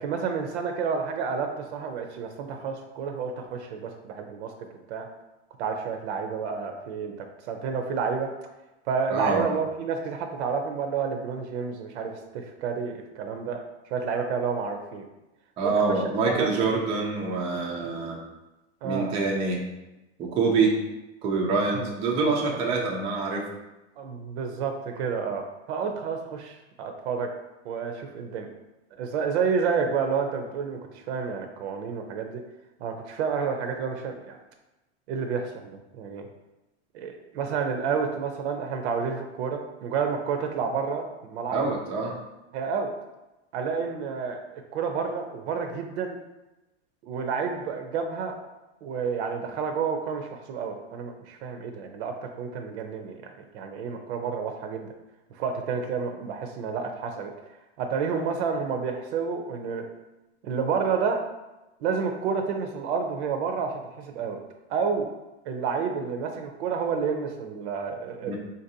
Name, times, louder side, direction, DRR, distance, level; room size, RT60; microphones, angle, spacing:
voice 1, 0.0-4.5 4.9-5.1 5.6-8.3 8.9-13.6 13.9-15.0 15.6-16.0 16.4-16.5 18.8-19.1 21.5-21.9 22.3-22.4 24.0-27.3 27.6-28.5 29.0-32.4 32.8-34.4 35.1-36.2 36.9-41.6 42.5-42.9 43.5-46.2 47.0-48.4 48.8-54.9 55.3-57.3 57.8-59.9 60.4-61.2 61.8-64.4 64.7-65.1 65.5-68.4, right 5 dB, 75° right, 4 dB, 0.5 m, -30 dB
voice 2, 9.1-9.5 15.6-18.2 18.8-19.6 20.2-20.8 21.2-23.4 41.5-42.2 68.3-68.4, right 4 dB, 20° right, -1 dB, 0.3 m, -25 dB
3.9 x 2.6 x 2.7 m, 1.0 s
supercardioid pair, 140°, 34 cm